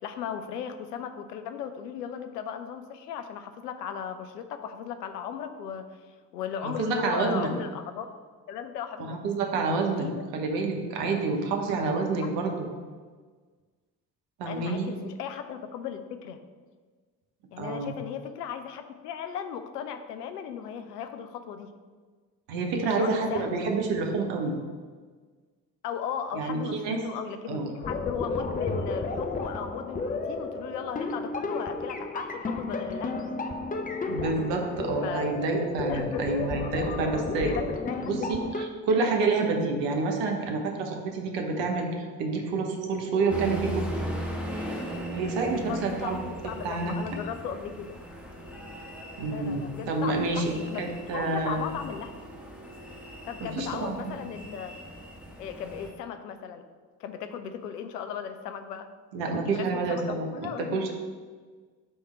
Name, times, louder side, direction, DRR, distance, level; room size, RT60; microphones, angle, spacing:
voice 1, 0.0-5.8 6.3-8.2 8.5-9.2 9.8-10.5 12.2-12.3 14.4-16.4 17.5-21.7 22.8-23.6 25.8-33.3 35.0-35.4 35.9-36.2 37.1-38.3 45.6-48.0 49.3-52.1 53.3-54.8 55.4-56.6 57.0-58.9 59.3-60.8, left 8 dB, 85° left, 8 dB, 0.6 m, -36 dB
voice 2, 6.6-7.5 9.0-10.1 10.3-12.6 14.4-14.9 17.6-17.9 22.5-24.6 26.3-27.0 27.5-27.7 34.1-37.6 38.0-44.1 45.1-47.0 49.2-51.7 53.4-54.2 59.1-60.9, right 3 dB, 65° right, 2 dB, 1.1 m, -28 dB
sound 1, 27.8-38.6, left 3 dB, 20° left, 0.6 m, -32 dB
sound 2, 43.3-55.9, equal, 5° right, 1.7 m, -39 dB
7.1 x 3.5 x 4.4 m, 1.5 s
figure-of-eight pair, 45°, 47 cm